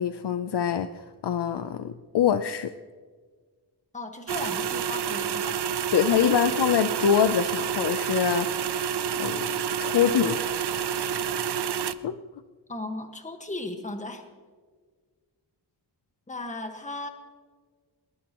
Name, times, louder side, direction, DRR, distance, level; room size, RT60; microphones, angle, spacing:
voice 1, 0.0-2.7 5.9-8.6 9.2-9.5 9.8-10.4 10.7-10.8 11.4-11.6 12.0-12.2, left 8 dB, 70° left, 10 dB, 0.7 m, -24 dB
voice 2, 3.9-5.7 12.7-14.2 16.3-17.1, left 2 dB, 15° left, 5 dB, 1.6 m, -36 dB
sound 1, 4.3-11.9, right 8 dB, 70° right, 0.7 m, -29 dB
22.0 x 20.5 x 3.0 m, 1.5 s
wide cardioid pair, 130°, 42 cm